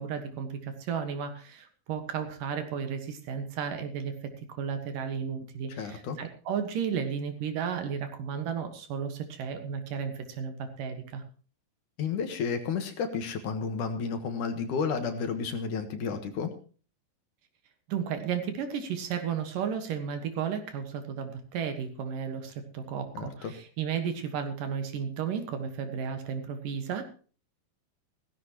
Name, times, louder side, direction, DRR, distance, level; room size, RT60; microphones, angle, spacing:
voice 1, 0.0-4.2 4.5-11.2 17.9-27.0, right 7 dB, 65° right, 7 dB, 3.0 m, -33 dB
voice 2, 5.7-6.2 12.0-16.5 23.1-23.5, left 5 dB, 65° left, 7 dB, 2.7 m, -32 dB
17.0 x 15.0 x 3.0 m, 0.39 s
omnidirectional pair, 4.2 m